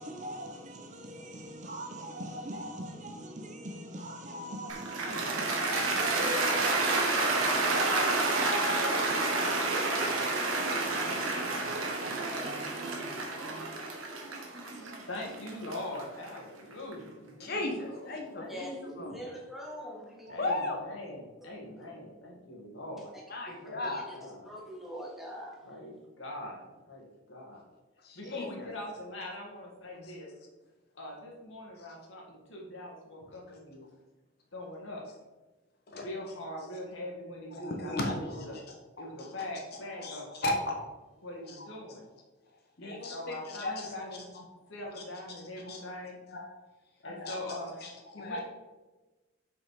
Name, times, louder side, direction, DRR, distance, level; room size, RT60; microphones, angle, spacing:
voice 1, 0.0-13.0 13.9-15.1 20.3-20.4 28.2-28.3, right 1 dB, 35° right, 0.7 m, -41 dB
Cheering / Applause, 4.7-16.9, right 3 dB, 85° right, 1.4 m, -30 dB
voice 2, 15.1-19.4 20.3-23.1 23.6-24.5 25.6-27.6 28.2-30.3 31.0-33.9 34.5-35.0 36.0-38.6 39.0-40.3 41.2-42.1 42.8-44.3 44.7-46.2 47.0-47.8 48.1-48.4, left 1 dB, 65° left, 1.9 m, -42 dB
voice 3, 17.4-19.2 20.4-20.8 23.3-24.2 28.0-28.7 30.0-30.1 31.8-31.9 35.9-36.1 37.5-39.3 39.7-40.7 41.5-41.7 42.8-43.9 44.3-44.4 45.0-45.1 45.6-45.8 46.3-46.5 47.0-48.4, left 2 dB, 50° left, 1.0 m, -36 dB
voice 4, 19.1-20.4 23.5-23.6 23.8-24.2 24.4-25.6, equal, ahead, 1.4 m, -43 dB
5.8 x 5.4 x 4.8 m
head